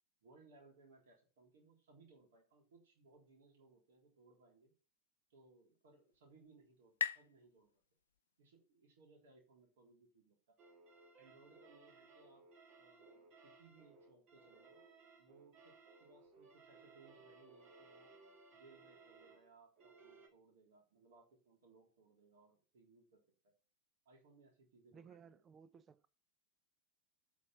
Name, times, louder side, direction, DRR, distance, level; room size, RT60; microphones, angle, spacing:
voice 1, 0.2-4.7 5.3-7.8 8.4-10.6 11.2-12.4 12.8-14.8 15.2-18.2 18.5-23.5 24.1-25.2, right 3 dB, 60° right, 3.9 m, -66 dB
sound 1, 5.5-8.9, left 8 dB, 65° left, 0.4 m, -46 dB
sound 2, 10.6-20.3, right 3 dB, 40° right, 2.3 m, -62 dB
voice 2, 24.9-26.1, right 6 dB, 25° right, 0.7 m, -59 dB
8.5 x 5.2 x 7.1 m
figure-of-eight pair, 90°, 0 cm